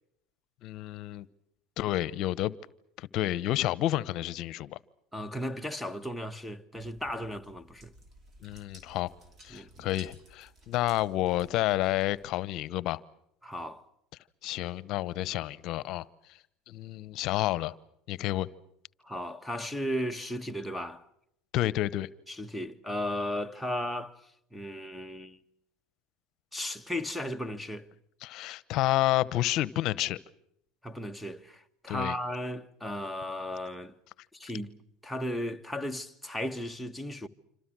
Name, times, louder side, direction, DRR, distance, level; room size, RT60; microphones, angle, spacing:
voice 1, 0.6-1.3 1.8-2.5 3.0-4.8 8.4-9.1 9.4-13.0 14.4-16.0 16.7-17.7 18.1-18.5 21.5-22.1 28.2-30.2 31.9-32.2, left 15 dB, 60° left, 1.0 m, -30 dB
voice 2, 5.1-7.9 9.5-9.9 13.4-13.8 19.0-21.0 22.3-24.2 24.5-25.4 26.5-27.9 30.8-33.9 34.3-34.8 35.0-37.3, left 1 dB, ahead, 1.5 m, -35 dB
sound 1, 6.8-12.3, right 1 dB, 35° right, 5.3 m, -56 dB
27.0 x 26.0 x 6.2 m
hypercardioid pair, 90°, 0 cm